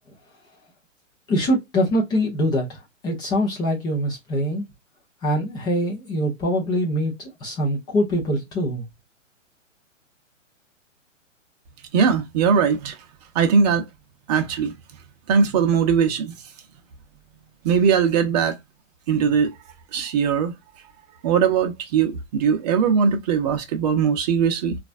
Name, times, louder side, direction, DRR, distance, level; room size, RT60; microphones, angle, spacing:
voice 1, 1.3-2.8 3.0-4.7 5.2-8.8, equal, 10° left, 0.6 m, -23 dB
voice 2, 11.9-13.0 13.3-13.8 14.3-14.7 15.3-16.3 17.6-18.6 19.1-19.5 19.9-20.5 21.2-24.8, right 6 dB, 30° right, 0.8 m, -20 dB
3.9 x 2.5 x 2.5 m
figure-of-eight pair, 120°, 38 cm